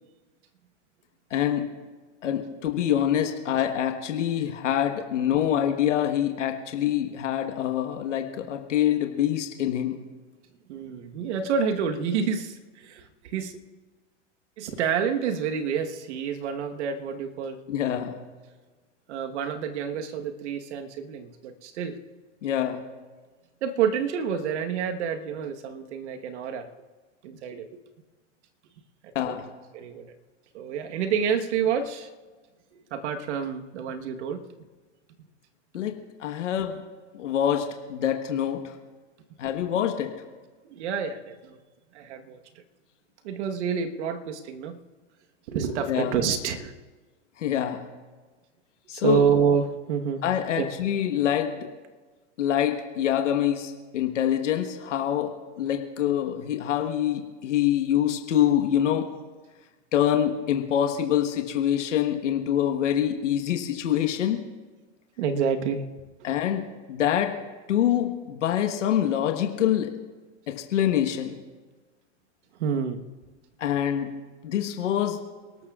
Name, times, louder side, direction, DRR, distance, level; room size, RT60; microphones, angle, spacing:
voice 1, 1.3-1.7 2.2-10.0 17.7-18.2 22.4-22.8 29.1-29.5 35.7-35.9 36.2-36.8 37.1-38.6 39.4-40.1 45.9-46.1 47.4-47.8 48.9-49.2 50.2-51.7 52.4-59.1 59.9-64.4 66.2-67.3 67.7-69.9 70.5-71.4 73.6-74.1 74.4-75.2, left 10 dB, 85° left, 4 dB, 1.4 m, -25 dB
voice 2, 10.7-13.6 14.6-17.6 19.1-22.0 23.6-26.7 27.2-27.7 29.0-29.4 29.7-30.1 30.5-32.1 32.7-34.4 40.6-41.6 41.9-42.4 43.2-44.8 45.5-46.7 48.9-50.2 50.6-50.7 65.2-65.8 72.6-73.0, right 7 dB, 70° right, 6 dB, 1.4 m, -28 dB
29.0 x 13.5 x 2.4 m, 1.3 s
hypercardioid pair, 120°, 35 cm